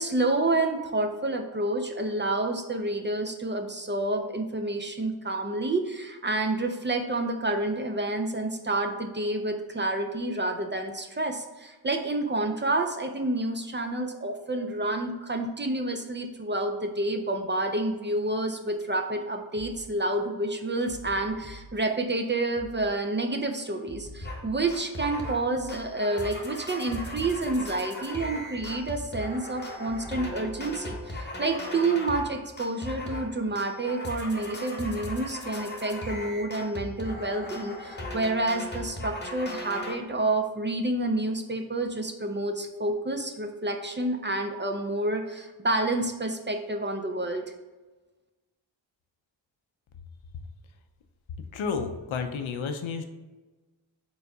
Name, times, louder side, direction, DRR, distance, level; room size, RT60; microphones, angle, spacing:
voice 1, 0.0-47.4, right 2 dB, 25° right, 4 dB, 0.4 m, -29 dB
sound 1, 19.6-19.9 20.9-21.7 22.6-22.9 23.9-24.8 25.6-25.9 26.9-27.8 28.6-28.9 29.9-30.8, equal, 5° right, 1.1 m, -46 dB
sound 2, 24.2-24.4 24.7-25.4 25.7-32.3 32.6-33.3 33.6-40.0, left 1 dB, 20° left, 0.9 m, -37 dB
voice 2, 51.5-53.0, left 5 dB, 80° left, 6 dB, 0.5 m, -31 dB
4.0 x 3.6 x 2.3 m, 1.2 s
cardioid pair, 40°, 47 cm